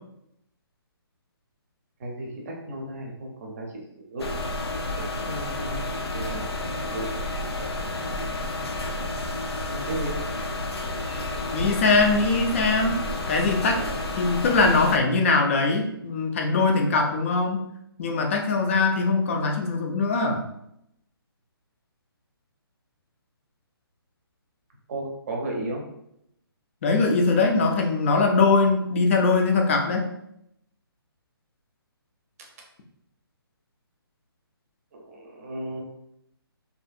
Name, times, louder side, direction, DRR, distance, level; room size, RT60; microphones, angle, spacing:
voice 1, 2.0-4.4 5.0-7.1 9.7-10.2 11.1-11.3 13.7-13.8 24.9-25.8 34.9-35.8, right 1 dB, 35° right, 0 dB, 0.6 m, -35 dB
sound 1, 4.2-15.0, left 2 dB, 85° left, 0.5 m, -31 dB
voice 2, 11.5-13.0 13.3-13.8 14.2-17.7 18.0-20.4 26.8-30.1, left 3 dB, 30° left, 2 dB, 0.4 m, -21 dB
2.7 x 2.4 x 2.4 m, 0.77 s
hypercardioid pair, 150°, 13 cm